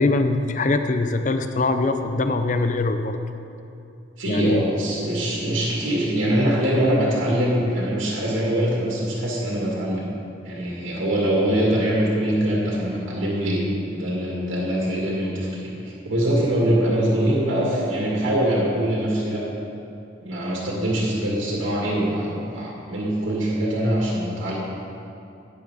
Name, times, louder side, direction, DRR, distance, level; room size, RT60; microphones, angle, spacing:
voice 1, 0.0-3.2 4.3-4.6, left 2 dB, 40° left, 8 dB, 0.5 m, -22 dB
voice 2, 4.2-10.1 10.4-13.6 13.9-19.5 20.2-24.5, right 1 dB, 85° right, -5 dB, 2.3 m, -23 dB
11.5 x 9.8 x 4.0 m, 2.6 s
head